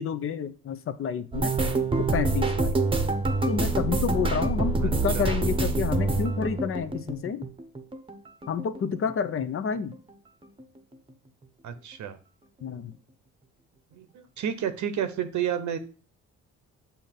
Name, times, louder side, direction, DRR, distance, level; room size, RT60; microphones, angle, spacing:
voice 1, 0.0-1.5 2.0-2.7 3.5-7.5 8.5-9.9 12.6-12.9, left 6 dB, 45° left, 0.6 m, -29 dB
sound 1, 1.3-8.2 8.4-9.5 9.8-10.1 10.4-10.6, right 3 dB, 15° right, 0.9 m, -26 dB
voice 2, 4.8-5.2 11.6-12.2 13.9-14.1 14.4-15.8, right 9 dB, 70° right, 0.8 m, -30 dB
6.9 x 2.8 x 5.7 m
cardioid pair, 90°, 30 cm